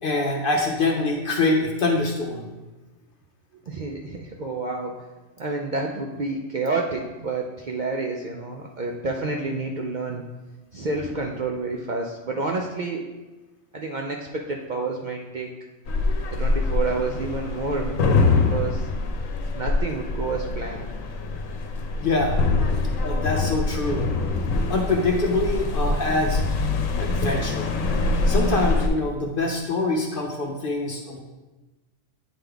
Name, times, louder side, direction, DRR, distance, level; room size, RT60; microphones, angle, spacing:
voice 1, 0.0-2.5 22.0-22.4 23.0-24.1 24.7-26.4 27.0-27.7 28.3-31.2, left 2 dB, 50° left, 1 dB, 0.7 m, -24 dB
voice 2, 3.7-4.9 5.4-10.2 10.7-13.0 13.7-15.5 16.3-18.9 19.5-20.9, right 3 dB, 60° right, 0 dB, 0.5 m, -29 dB
sound 1, 15.9-28.9, left 3 dB, 85° left, 1.1 m, -24 dB
8.9 x 3.8 x 3.4 m, 1.2 s
omnidirectional pair, 1.4 m